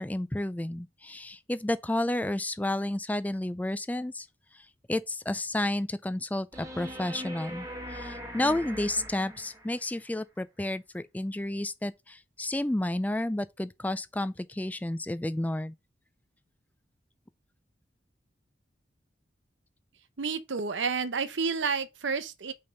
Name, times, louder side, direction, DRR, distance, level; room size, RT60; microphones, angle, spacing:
voice 1, 0.0-4.3 4.9-15.7, left 1 dB, 10° left, 0.3 m, -31 dB
sound 1, 6.5-9.9 12.5-12.6, equal, 20° right, 1.6 m, -41 dB
voice 2, 20.2-22.5, right 5 dB, 85° right, 0.7 m, -30 dB
5.5 x 3.5 x 5.1 m
head